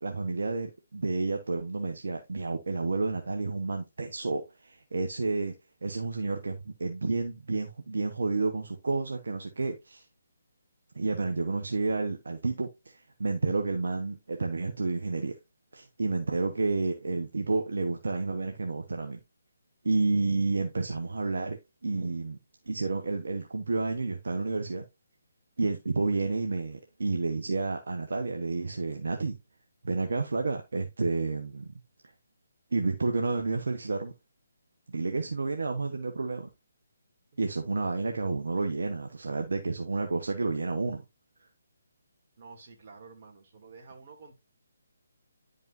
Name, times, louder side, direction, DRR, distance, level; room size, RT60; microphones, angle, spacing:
voice 1, 0.0-5.5 5.8-10.0 10.9-15.4 15.7-19.2 19.8-21.6 21.8-22.4 22.7-24.8 25.6-29.4 29.8-31.7 32.7-34.1 34.9-36.5 37.4-41.0, right 3 dB, 70° right, 1.1 m, -30 dB
voice 2, 42.4-44.3, right 4 dB, 45° right, 2.6 m, -50 dB
10.5 x 5.4 x 2.7 m
figure-of-eight pair, 150°, 0 cm